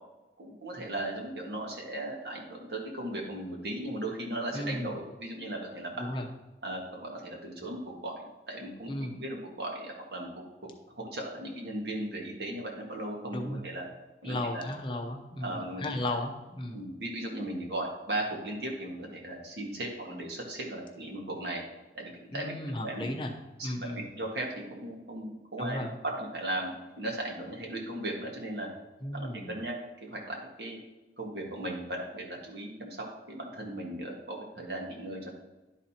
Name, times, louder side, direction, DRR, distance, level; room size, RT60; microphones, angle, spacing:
voice 1, 0.4-6.1 6.6-10.3 11.0-13.8 14.2-14.6 15.4-16.0 16.7-21.6 22.0-22.5 22.8-23.1 23.6-28.7 29.1-29.7 30.0-30.8 31.2-35.3, right 1 dB, 65° right, -1 dB, 1.8 m, -37 dB
voice 2, 4.5-5.0 6.0-6.3 8.9-9.1 13.3-13.6 14.2-16.8 22.3-23.3 23.6-24.1 25.6-25.9 29.0-29.5, left 1 dB, 30° left, 3 dB, 0.7 m, -35 dB
11.0 x 4.0 x 4.3 m, 1.1 s
head